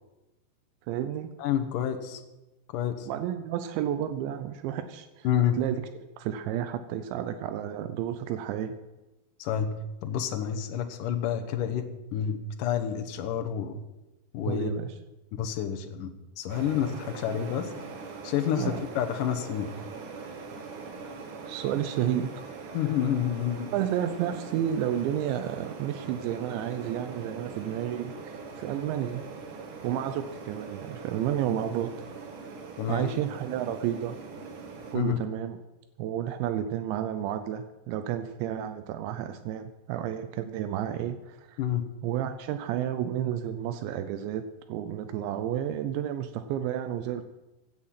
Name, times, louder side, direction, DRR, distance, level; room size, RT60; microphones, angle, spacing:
voice 1, 0.9-1.3 3.0-5.3 5.6-5.8 6.2-8.7 14.5-14.9 18.5-18.8 21.5-22.3 22.6-22.7 23.7-29.2 29.8-31.9 32.9-34.2 34.9-35.6 36.0-41.6 42.0-44.4 44.7-47.2, right 10 dB, 85° right, 10 dB, 3.0 m, -31 dB
voice 2, 1.4-2.2 2.7-3.1 5.2-5.6 9.4-9.8 10.0-11.9 12.1-13.8 14.3-14.7 15.3-16.1 16.4-17.7 18.2-19.7 22.7-23.7 32.8-33.1 34.9-35.2 41.6-41.8, left 9 dB, 80° left, 6 dB, 1.9 m, -29 dB
sound 1, 16.5-35.0, right 4 dB, 55° right, 2.6 m, -42 dB
16.0 x 10.5 x 5.8 m, 1.0 s
omnidirectional pair, 5.2 m